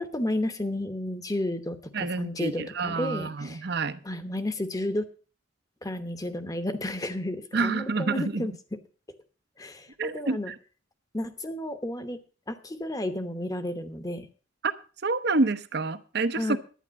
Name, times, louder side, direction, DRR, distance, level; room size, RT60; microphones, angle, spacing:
voice 1, 0.0-3.6 4.0-5.1 5.8-8.5 9.6-10.5 11.1-12.2 12.5-14.3 16.4-16.6, left 1 dB, 20° left, 10 dB, 1.0 m, -32 dB
voice 2, 1.9-4.0 7.5-8.5 10.0-10.5 14.6-14.7 15.0-16.6, right 3 dB, 60° right, 12 dB, 0.8 m, -28 dB
11.5 x 9.7 x 5.2 m, 0.38 s
head